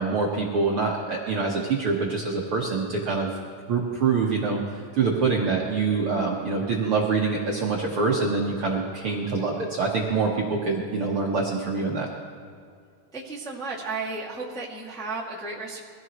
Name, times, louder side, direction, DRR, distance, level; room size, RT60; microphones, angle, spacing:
voice 1, 0.0-3.3 3.7-12.1, right 4 dB, 55° right, -3 dB, 1.6 m, -25 dB
voice 2, 13.1-15.8, right 3 dB, ahead, -5 dB, 1.2 m, -33 dB
23.0 x 15.5 x 3.1 m, 2.3 s
omnidirectional pair, 4.0 m